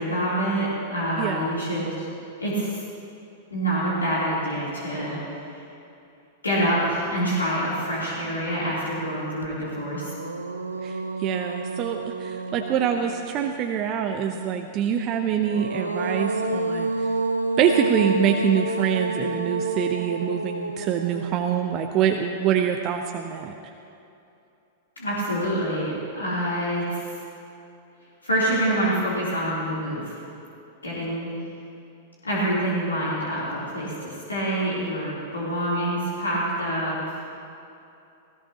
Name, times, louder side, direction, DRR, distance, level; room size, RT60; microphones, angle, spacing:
voice 1, 0.0-2.1 2.4-2.8 3.5-5.2 6.4-10.1 25.0-27.0 28.2-30.1 30.8-31.3 32.2-37.2, right 1 dB, 80° left, -8 dB, 3.4 m, -26 dB
voice 2, 1.2-1.5 10.8-16.9 17.6-23.5, right 8 dB, 35° right, 4 dB, 0.8 m, -25 dB
sound 1, 9.4-9.5 9.9-13.6 15.2-22.5, right 2 dB, 80° right, 0.7 m, -29 dB
19.0 x 17.5 x 3.0 m, 2.7 s
figure-of-eight pair, 95°, 0 cm